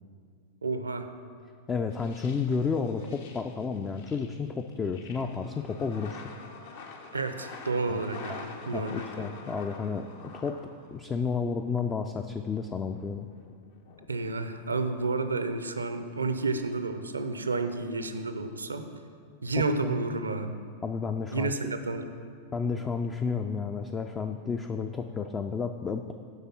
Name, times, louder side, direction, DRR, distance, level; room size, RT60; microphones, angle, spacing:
voice 1, 0.6-1.1 7.1-9.3 14.1-18.9 19.4-20.5 21.3-22.1, right 3 dB, 80° right, 9 dB, 0.5 m, -31 dB
voice 2, 1.7-6.2 7.9-10.1 10.3-10.6 10.9-13.3 19.8-20.0 20.8-21.7 22.5-26.1, left 5 dB, 20° left, 6 dB, 0.3 m, -32 dB
sound 1, 1.9-11.5 11.8-14.5, left 4 dB, 55° left, 0.7 m, -47 dB
8.0 x 5.3 x 5.9 m, 2.1 s
figure-of-eight pair, 90°, 0 cm